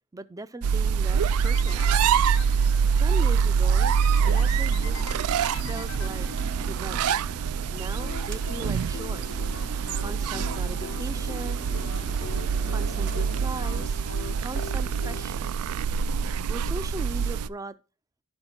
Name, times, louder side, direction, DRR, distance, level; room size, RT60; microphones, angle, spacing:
voice 1, 0.1-1.9 3.0-3.9 4.2-5.2 5.6-6.3 6.7-7.2 7.7-9.4 10.0-11.7 12.6-14.0 14.4-15.5 16.5-17.8, right 2 dB, 15° right, 0.4 m, -39 dB
sound 1, 0.6-17.5, right 6 dB, 85° right, 0.4 m, -25 dB
sound 2, 1.2-3.1 4.0-6.8 7.8-15.3, left 6 dB, 65° left, 0.5 m, -43 dB
sound 3, 4.1-13.9, right 1 dB, 55° right, 1.2 m, -42 dB
11.5 x 5.6 x 4.4 m
head